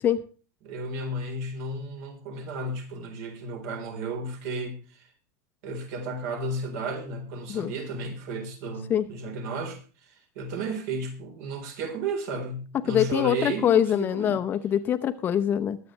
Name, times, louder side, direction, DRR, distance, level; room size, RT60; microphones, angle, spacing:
voice 1, 0.6-5.1 5.6-14.4, right 2 dB, 60° right, 5 dB, 4.1 m, -33 dB
voice 2, 12.9-15.8, left 9 dB, 25° left, 10 dB, 0.7 m, -24 dB
22.0 x 8.4 x 3.3 m, 0.39 s
supercardioid pair, 170°, 9 cm